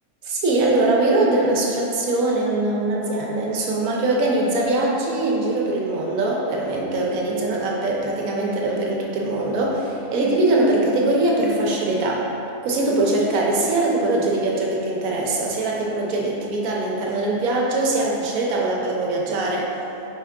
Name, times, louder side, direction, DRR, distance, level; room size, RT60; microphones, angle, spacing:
voice 1, 0.2-12.3 12.6-19.7, right 2 dB, 85° right, -3 dB, 1.1 m, -22 dB
4.9 x 2.2 x 3.5 m, 2.9 s
omnidirectional pair, 1.4 m